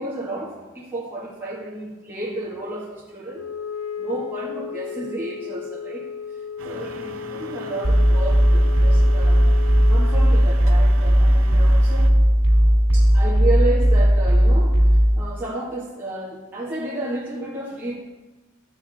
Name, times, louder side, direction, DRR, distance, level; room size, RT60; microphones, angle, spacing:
voice 1, 0.0-3.5 4.0-6.0 6.6-9.4 9.9-12.1 12.9-14.8 15.1-18.0, right 1 dB, 10° right, -8 dB, 1.6 m, -31 dB
Wind instrument woodwind instrument, 3.3-10.4, left 7 dB, 85° left, 0.4 m, -34 dB
sound 1, 6.6-12.1, right 4 dB, 70° right, 0.7 m, -40 dB
sound 2, 7.8-15.2, equal, 85° right, 2.1 m, -16 dB
12.0 x 7.8 x 3.5 m, 1.2 s
head